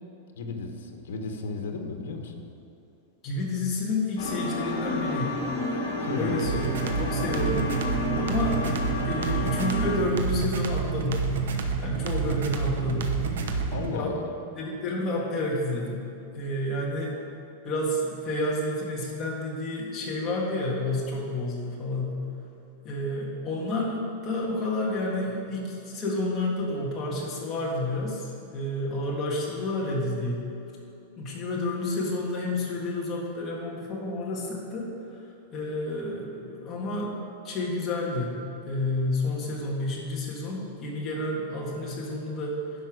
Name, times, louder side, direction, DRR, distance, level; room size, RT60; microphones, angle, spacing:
voice 1, 0.3-2.5 6.0-6.5 13.7-14.3, left 3 dB, 90° left, 5 dB, 1.2 m, -34 dB
voice 2, 3.2-5.4 6.2-6.6 7.0-7.7 8.1-8.6 9.0-11.3 11.8-13.1 13.9-14.1 14.6-16.1 16.3-17.1 17.6-22.2 22.8-30.5 31.2-34.9 35.5-37.1 37.4-38.4 38.6-42.6, left 2 dB, 20° left, -4 dB, 1.6 m, -30 dB
sound 1, 4.2-10.0, left 2 dB, 60° left, 2.4 m, -30 dB
sound 2, 6.4-14.0, right 5 dB, 90° right, 1.0 m, -29 dB
11.0 x 5.4 x 6.2 m, 2.8 s
supercardioid pair, 180°, 0 cm